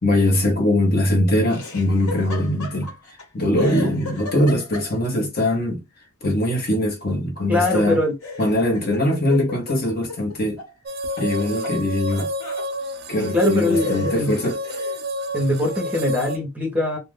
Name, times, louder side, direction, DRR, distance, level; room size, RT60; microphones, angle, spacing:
voice 1, 0.0-2.9 3.3-5.8 6.2-8.0 8.4-10.6 11.2-12.3 13.1-14.6, left 1 dB, 45° left, 0.9 m, -21 dB
Laughter, 1.5-3.2 3.6-5.2 7.6-10.7 11.0-12.7 13.3-13.4 13.7-15.1, left 3 dB, 90° left, 1.1 m, -35 dB
voice 2, 7.5-8.2 13.3-14.3 15.3-17.0, left 1 dB, 5° right, 0.9 m, -22 dB
sound 1, 10.9-16.4, equal, 45° right, 0.3 m, -30 dB
2.4 x 2.1 x 3.3 m
head